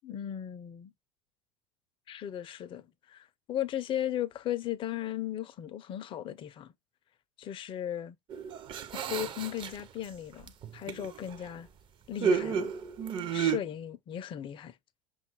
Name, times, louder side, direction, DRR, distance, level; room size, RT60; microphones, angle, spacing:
voice 1, 0.0-0.9 2.1-6.7 7.4-8.2 8.9-11.7 12.1-12.7 13.3-14.8, left 11 dB, 30° left, 0.4 m, -36 dB
sound 1, 8.3-10.1 10.4-11.5 12.2-13.6, right 6 dB, 30° right, 0.5 m, -31 dB
5.5 x 2.3 x 2.8 m
figure-of-eight pair, 80°, 16 cm